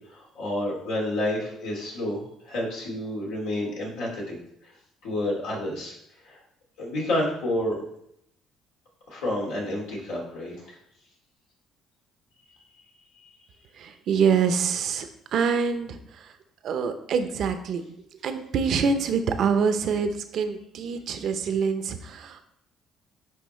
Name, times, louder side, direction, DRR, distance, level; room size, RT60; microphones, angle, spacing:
voice 1, 0.1-4.4 5.0-5.9 6.2-6.4 6.8-7.8 9.1-10.8 13.2-13.3, left 1 dB, 90° left, -3 dB, 2.3 m, -29 dB
voice 2, 13.7-16.3 16.6-17.8 18.1-22.5, right 6 dB, 65° right, 8 dB, 0.7 m, -26 dB
10.0 x 3.5 x 3.2 m, 0.74 s
supercardioid pair, 80°, 0 cm